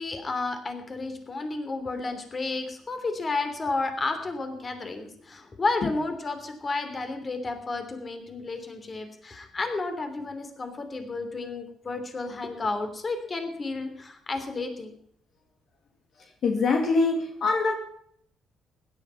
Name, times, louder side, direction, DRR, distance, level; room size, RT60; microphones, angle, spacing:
voice 1, 0.0-15.0, left 3 dB, 35° left, 7 dB, 3.1 m, -32 dB
voice 2, 16.4-17.7, left 3 dB, 60° left, 2 dB, 2.2 m, -23 dB
16.0 x 11.0 x 5.6 m, 0.65 s
cardioid pair, 90°, 0 cm